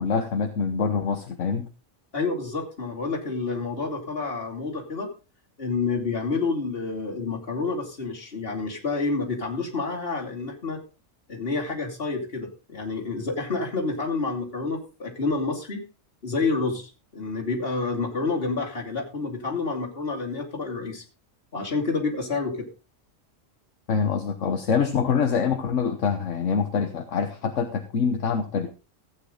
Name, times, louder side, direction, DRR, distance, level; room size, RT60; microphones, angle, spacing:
voice 1, 0.0-1.7 23.9-28.7, left 6 dB, 70° left, 6 dB, 1.4 m, -25 dB
voice 2, 2.1-5.1 5.6-10.8 11.3-15.8 16.2-21.0 21.5-22.7, left 3 dB, 45° left, 0 dB, 3.0 m, -29 dB
15.0 x 9.0 x 3.9 m, 0.32 s
omnidirectional pair, 1.3 m